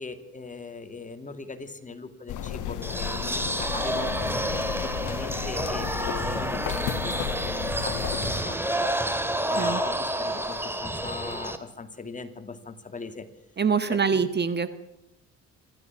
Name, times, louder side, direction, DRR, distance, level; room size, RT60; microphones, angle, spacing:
voice 1, 0.0-4.2 4.7-8.6 9.5-13.3 13.9-14.2, left 4 dB, 25° left, 7 dB, 2.5 m, -40 dB
sound 1, 2.3-8.4, left 10 dB, 90° left, 1.4 m, -33 dB
sound 2, 2.8-11.6, right 1 dB, 5° right, 2.3 m, -29 dB
voice 2, 13.6-14.7, right 5 dB, 35° right, 11 dB, 1.4 m, -24 dB
27.0 x 13.5 x 7.3 m, 0.88 s
cardioid pair, 90°, 30 cm